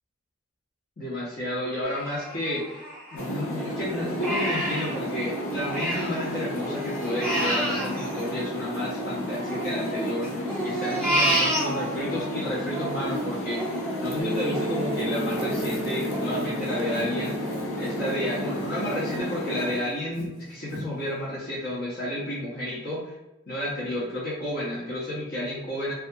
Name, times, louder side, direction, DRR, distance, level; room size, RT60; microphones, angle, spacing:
voice 1, 1.0-2.8 3.1-17.4 17.7-23.1 23.5-25.9, left 1 dB, 45° left, -7 dB, 0.6 m, -31 dB
Crying sobbing, 1.8-3.5 3.9-6.3 6.6-9.0 9.5-12.3 12.7-18.1 18.6-18.7 19.1-19.7 20.2-20.3 20.7-20.8, right 1 dB, 5° left, 0.6 m, -30 dB
sound 1, 3.2-19.8, left 1 dB, 85° left, 0.5 m, -32 dB
sound 2, 14.2-19.2, equal, 55° right, 0.3 m, -34 dB
2.4 x 2.3 x 2.6 m, 0.97 s
head